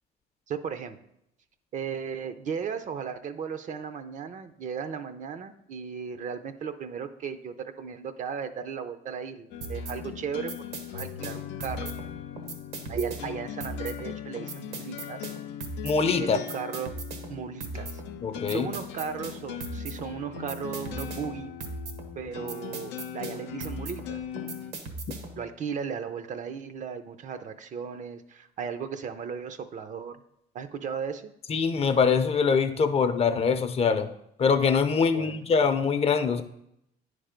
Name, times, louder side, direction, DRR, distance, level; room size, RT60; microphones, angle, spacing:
voice 1, 0.5-1.0 1.7-10.5 10.9-11.9 12.9-15.2 16.2-17.0 17.3-18.0 18.5-21.5 22.2-24.2 25.4-30.2 30.5-31.3 35.1-35.4, right 6 dB, 45° right, 11 dB, 0.5 m, -36 dB
sound 1, 9.5-24.7, left 10 dB, 85° left, 0.5 m, -40 dB
sound 2, 9.6-25.5, right 2 dB, 80° right, 1.1 m, -39 dB
voice 2, 15.8-16.4 18.2-18.7 31.5-34.1 34.4-36.4, left 5 dB, 35° left, 9 dB, 0.5 m, -23 dB
9.6 x 3.4 x 5.0 m, 0.78 s
cardioid pair, 110°, 17 cm